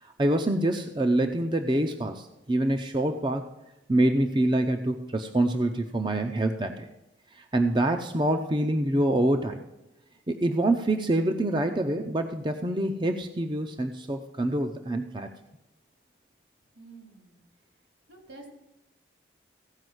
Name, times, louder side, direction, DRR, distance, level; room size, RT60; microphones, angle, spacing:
voice 1, 0.0-3.4 3.9-6.9 7.3-9.6 10.3-15.3, right 1 dB, 25° right, 5 dB, 0.6 m, -26 dB
voice 2, 16.7-17.8 18.1-18.5, right 3 dB, 75° right, 1 dB, 3.8 m, -50 dB
15.5 x 5.3 x 7.9 m, 0.96 s
head